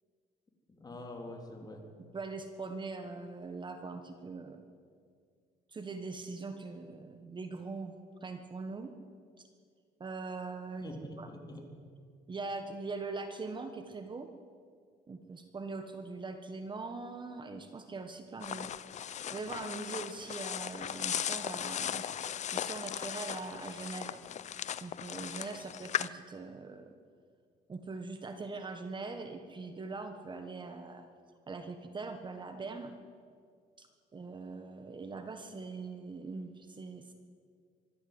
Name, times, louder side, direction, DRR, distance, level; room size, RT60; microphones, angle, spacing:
voice 1, 0.7-1.9 10.8-11.7, left 1 dB, 25° left, 3 dB, 3.5 m, -45 dB
voice 2, 2.1-4.6 5.7-7.9 8.2-8.9 9.4-9.5 10.0-11.3 12.3-14.3 15.1-18.7 19.3-22.0 22.5-24.3 24.8-26.9 27.7-31.0 31.5-33.0 33.8-33.9 34.1-37.1, right 3 dB, 30° right, 6 dB, 1.5 m, -42 dB
sound 1, 18.4-26.1, left 9 dB, 45° left, 0.7 m, -37 dB
24.5 x 13.0 x 8.1 m, 2.1 s
cardioid pair, 110°, 17 cm